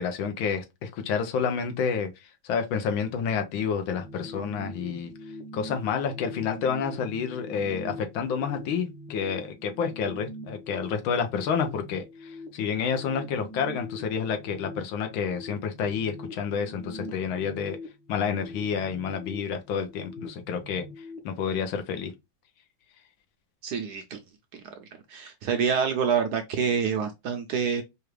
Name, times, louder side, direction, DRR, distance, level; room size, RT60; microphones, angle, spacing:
voice 1, 0.0-2.1 2.4-5.1 5.5-17.8 18.1-20.9 21.2-22.1, left 6 dB, 85° left, 1.6 m, -29 dB
sound 1, 3.9-21.2, left 1 dB, 60° left, 1.5 m, -43 dB
voice 2, 23.6-24.2 25.1-27.8, right 6 dB, 70° right, 0.9 m, -27 dB
4.9 x 2.4 x 3.1 m
omnidirectional pair, 2.2 m